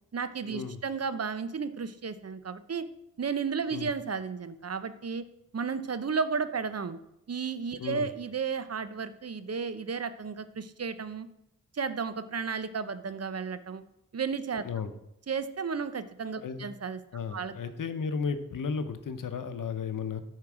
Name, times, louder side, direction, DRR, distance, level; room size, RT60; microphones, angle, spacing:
voice 1, 0.1-2.8 3.2-5.2 5.5-7.0 7.3-11.3 11.7-13.8 14.1-14.6 15.3-17.0 17.3-17.5, right 5 dB, 50° right, 12 dB, 0.7 m, -33 dB
voice 2, 17.1-20.2, left 5 dB, 80° left, 10 dB, 0.8 m, -34 dB
9.6 x 4.7 x 6.1 m, 0.82 s
cardioid pair, 50°, 31 cm